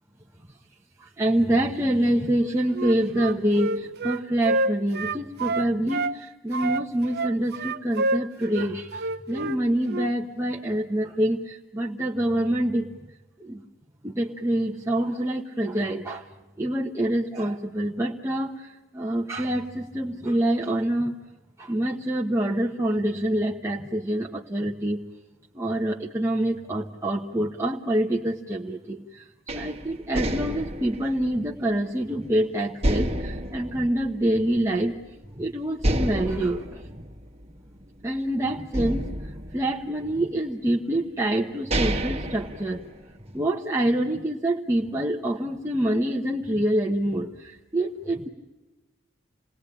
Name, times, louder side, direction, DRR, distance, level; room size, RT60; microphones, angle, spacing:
voice 1, 1.2-12.9 13.4-13.6 14.0-16.2 16.6-18.7 18.9-21.1 21.6-25.0 25.5-29.2 29.5-34.9 35.4-36.6 38.0-39.1 39.5-42.8 43.3-48.3, right 1 dB, 15° right, -2 dB, 1.1 m, -26 dB
Wind instrument woodwind instrument, 2.7-6.2 6.5-9.6 9.9-10.1, right 2 dB, 55° right, 0.8 m, -28 dB
sound 1, 29.5-32.3 32.8-34.8 35.1-35.2 35.8-38.2 38.7-40.3 41.1-41.2 41.5-43.3, right 1 dB, 30° right, 1.7 m, -30 dB
28.0 x 19.0 x 10.0 m, 1.2 s
head